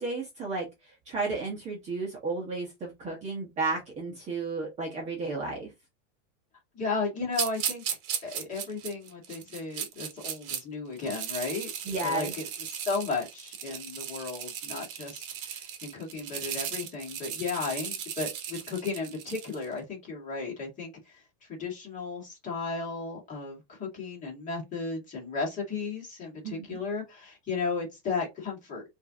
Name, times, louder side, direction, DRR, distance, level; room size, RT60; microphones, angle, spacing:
voice 1, 0.0-5.7 11.8-12.3 26.4-26.8, right 3 dB, 20° right, 1.0 m, -33 dB
voice 2, 6.7-7.8 8.2-11.7 12.0-12.4 12.7-21.2 21.5-28.8, left 4 dB, 20° left, 1.7 m, -34 dB
sound 1, 7.3-10.6 11.0-19.6, right 8 dB, 50° right, 1.0 m, -36 dB
5.3 x 2.7 x 2.7 m
supercardioid pair, 165°, 37 cm